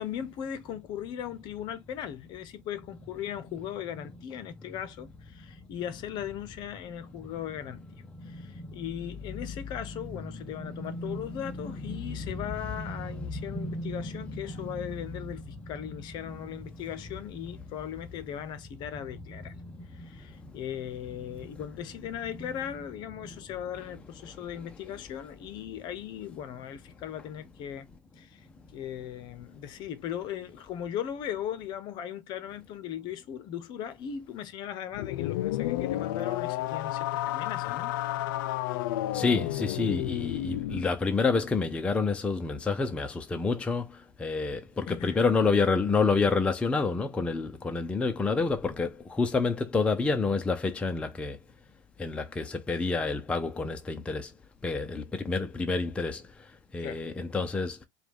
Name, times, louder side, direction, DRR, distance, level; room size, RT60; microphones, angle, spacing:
voice 1, 0.0-7.8 8.2-19.5 19.9-27.9 28.2-28.5 28.7-37.9 44.9-45.2 56.8-57.0, left 9 dB, 40° left, 0.8 m, -38 dB
voice 2, 8.2-8.8 9.9-10.0 10.3-12.4 12.8-14.1 14.5-14.6 15.4-15.5 19.6-20.2 20.4-20.5 21.3-21.4 39.1-51.4 52.0-54.3 54.6-57.8, left 4 dB, 10° left, 0.5 m, -29 dB
sound 1, 34.9-40.9, left 15 dB, 70° left, 0.4 m, -31 dB
4.7 x 2.3 x 3.5 m
supercardioid pair, 140°, 11 cm